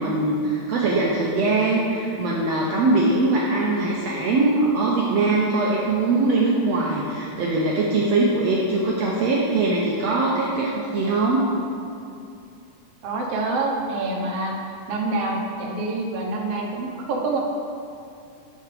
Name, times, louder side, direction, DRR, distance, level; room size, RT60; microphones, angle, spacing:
voice 1, 0.0-11.5, right 2 dB, 80° right, -3 dB, 1.5 m, -22 dB
voice 2, 13.0-14.5 14.9-17.4, right 2 dB, 60° right, -2 dB, 1.7 m, -26 dB
10.5 x 7.8 x 3.4 m, 2.5 s
omnidirectional pair, 3.9 m